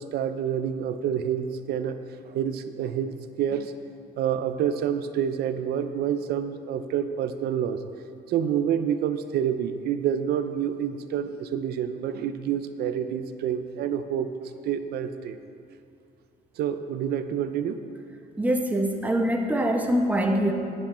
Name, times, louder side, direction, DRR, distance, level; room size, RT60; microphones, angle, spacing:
voice 1, 0.0-2.0 2.3-3.7 4.2-7.8 8.3-14.3 14.6-15.4 16.6-17.8, right 9 dB, 70° right, 10 dB, 0.6 m, -28 dB
voice 2, 18.4-20.5, equal, 10° right, 3 dB, 1.0 m, -24 dB
10.0 x 8.4 x 4.3 m, 2.5 s
cardioid pair, 110°, 17 cm